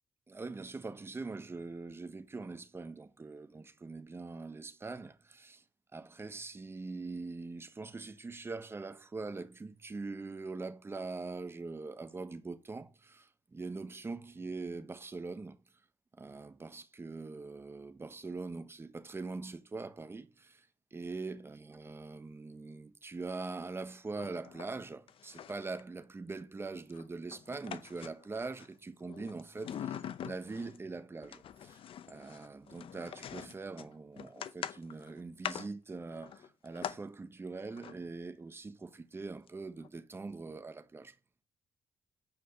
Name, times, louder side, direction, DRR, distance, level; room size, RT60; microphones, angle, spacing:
voice 1, 0.3-5.6 5.9-15.6 16.1-20.7 20.9-31.8 32.1-41.2, right 3 dB, 25° right, 1.2 m, -43 dB
sound 1, 24.2-24.8 25.1-25.8 26.9-28.7 29.1-30.8 31.2-37.0 37.7-38.0 39.5-39.6 39.8-39.9, left 9 dB, 70° left, 0.7 m, -44 dB
8.7 x 5.2 x 5.2 m
cardioid pair, 105°, 10 cm